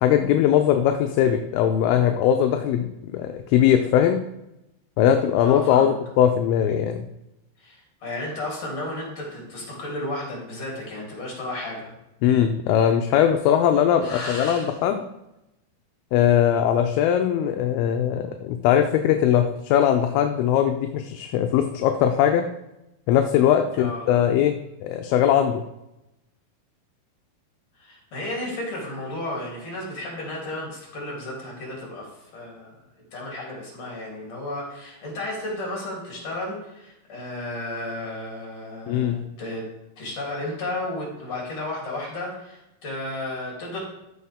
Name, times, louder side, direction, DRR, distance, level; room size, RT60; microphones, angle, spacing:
voice 1, 0.0-4.2 5.0-7.1 12.2-15.1 16.1-22.5 23.1-25.7 38.9-39.2, left 9 dB, 80° left, 6 dB, 2.3 m, -20 dB
voice 2, 5.4-5.9 7.6-12.0 14.0-14.7 23.8-24.2 27.8-32.8 33.1-39.6 40.0-43.8, left 1 dB, 40° left, -3 dB, 3.9 m, -33 dB
14.0 x 5.5 x 3.6 m, 0.90 s
omnidirectional pair, 4.8 m